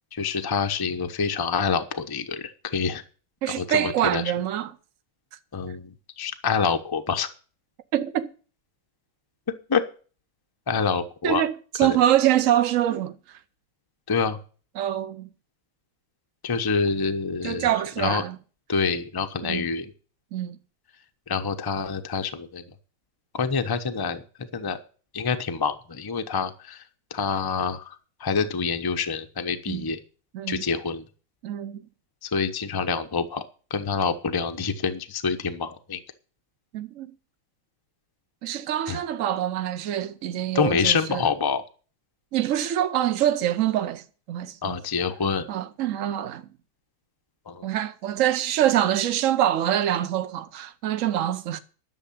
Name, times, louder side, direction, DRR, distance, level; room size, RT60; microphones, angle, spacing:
voice 1, 0.1-3.0 3.4-4.2 5.5-7.3 9.7-9.8 10.7-11.4 11.8-12.0 14.1-14.4 16.4-18.2 18.7-19.9 21.3-22.7 23.3-24.8 25.1-26.8 27.1-30.0 30.5-31.0 32.2-33.4 33.7-36.0 38.9-39.0 40.5-41.6 44.6-45.5 47.5-47.7, left 5 dB, 25° left, 0.4 m, -27 dB
voice 2, 3.4-4.7 7.9-8.3 11.2-13.4 14.8-15.3 17.4-18.4 19.4-19.7 20.3-20.6 29.7-29.9 30.3-30.6 31.4-31.8 36.7-37.1 38.4-41.2 42.3-44.8 45.5-46.5 47.6-51.6, right 11 dB, 75° right, 0.7 m, -25 dB
11.0 x 6.7 x 8.6 m
omnidirectional pair, 2.2 m